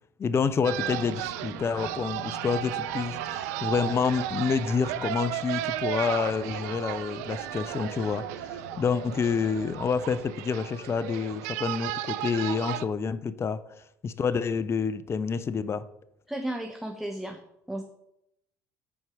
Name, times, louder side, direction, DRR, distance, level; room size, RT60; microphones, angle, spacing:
voice 1, 0.2-8.3 8.8-13.6 14.0-15.8, left 5 dB, 30° left, 0.5 m, -28 dB
sound 1, 0.6-10.3, left 2 dB, 85° left, 2.4 m, -47 dB
sound 2, 0.6-12.8, right 13 dB, 70° right, 0.4 m, -34 dB
voice 2, 16.3-17.4 17.7-17.8, right 1 dB, ahead, 0.8 m, -33 dB
8.6 x 4.5 x 5.0 m
hypercardioid pair, 65°, 9 cm